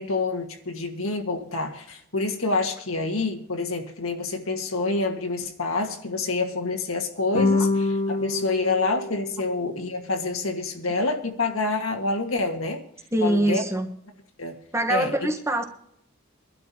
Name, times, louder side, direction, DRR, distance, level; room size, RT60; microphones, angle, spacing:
voice 1, 0.0-12.8 13.2-13.6 14.4-14.6 14.9-15.1, left 3 dB, 90° left, 1.6 m, -27 dB
sound 1, 7.3-9.9, left 3 dB, 35° left, 1.4 m, -26 dB
voice 2, 13.1-13.9 14.7-15.6, right 1 dB, 15° right, 1.1 m, -23 dB
24.0 x 12.0 x 2.8 m
head